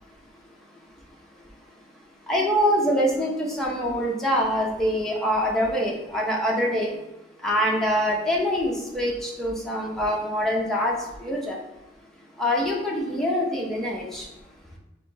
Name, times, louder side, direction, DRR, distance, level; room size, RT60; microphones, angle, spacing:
voice 1, 2.3-6.9 7.4-10.9 11.2-11.6 12.4-14.2, equal, ahead, -4 dB, 0.9 m, -24 dB
4.3 x 2.8 x 4.4 m, 0.97 s
head